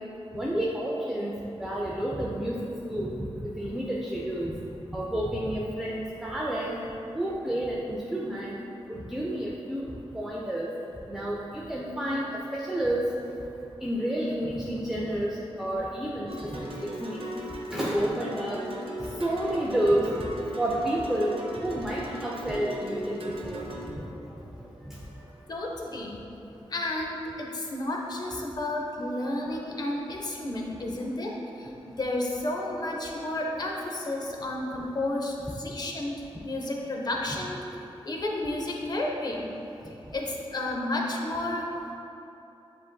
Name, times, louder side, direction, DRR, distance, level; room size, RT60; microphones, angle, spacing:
voice 1, 0.4-1.3 1.6-2.6 2.9-3.2 3.6-4.5 4.9-6.8 7.2-8.5 8.9-9.8 10.1-10.7 11.1-11.4 11.7-12.2 12.5-13.0 13.8-15.3 15.6-16.3 17.0-17.2 17.7-18.6 19.2-20.1 20.6-21.3 21.6-23.6, right 1 dB, 5° right, -5 dB, 0.4 m, -29 dB
sound 1, 16.3-23.9, right 1 dB, 65° right, 0.6 m, -38 dB
voice 2, 25.5-26.2 26.7-31.7 32.0-36.1 36.4-37.6 38.0-39.5 39.9-41.9, left 1 dB, 40° left, -1 dB, 0.6 m, -32 dB
7.4 x 2.6 x 2.3 m, 2.9 s
wide cardioid pair, 85°, 10 cm